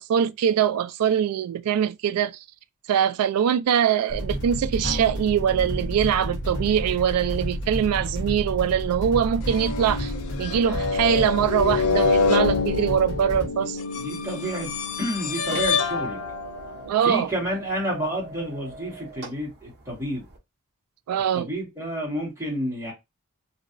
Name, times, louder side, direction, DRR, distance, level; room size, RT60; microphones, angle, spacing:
voice 1, 0.0-2.4 2.9-10.1 10.4-13.8 16.9-17.3 21.1-21.5, right 8 dB, 85° right, 0.3 m, -23 dB
sound 1, 4.1-13.5, equal, 55° left, 1.0 m, -31 dB
sound 2, 4.8-6.2 6.6-6.9 8.0-8.1 9.4-16.9, left 4 dB, 75° left, 0.5 m, -27 dB
voice 2, 13.9-14.7 15.0-16.2 17.0-20.2 21.3-22.9, equal, 15° right, 1.6 m, -30 dB
sound 3, 14.4-20.4, right 2 dB, 50° right, 0.8 m, -42 dB
3.0 x 2.7 x 2.5 m
head